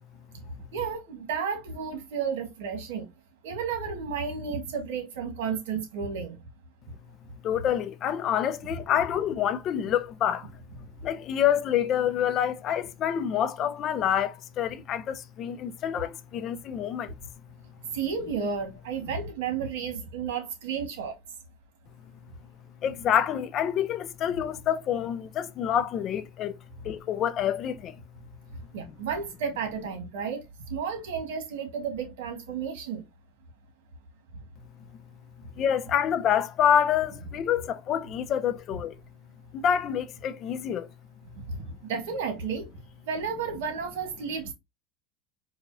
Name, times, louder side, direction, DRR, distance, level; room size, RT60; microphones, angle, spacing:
voice 1, 0.7-3.1 3.4-6.4 17.9-21.2 28.7-33.0 41.4-41.6 41.8-42.7 43.0-44.5, right 6 dB, 90° right, 1.4 m, -32 dB
voice 2, 7.4-10.5 11.0-17.1 22.8-26.6 26.8-28.0 35.6-38.9 39.5-40.9, left 9 dB, 40° left, 0.4 m, -27 dB
4.8 x 2.4 x 2.6 m
supercardioid pair, 130°, 0 cm